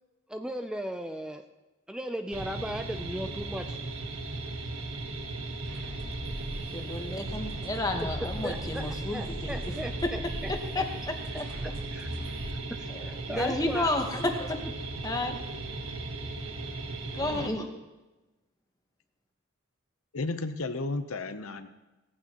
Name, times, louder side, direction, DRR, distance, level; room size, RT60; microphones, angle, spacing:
voice 1, 0.3-1.4 1.9-3.8 8.2-10.8 11.9-12.1 12.8-14.0, equal, 5° right, 6 dB, 0.4 m, -37 dB
sound 1, 2.3-17.5, right 2 dB, 90° right, 1.5 m, -37 dB
sound 2, 5.7-12.5, equal, 50° right, 2.1 m, -40 dB
voice 2, 6.7-9.5 10.0-10.1 10.5-11.4 12.9-14.6 15.0-15.4 17.1-17.7, left 2 dB, 15° left, 4 dB, 1.2 m, -31 dB
voice 3, 17.2-17.5 20.1-21.7, left 3 dB, 85° left, 9 dB, 0.8 m, -33 dB
18.0 x 15.0 x 3.0 m, 1.1 s
head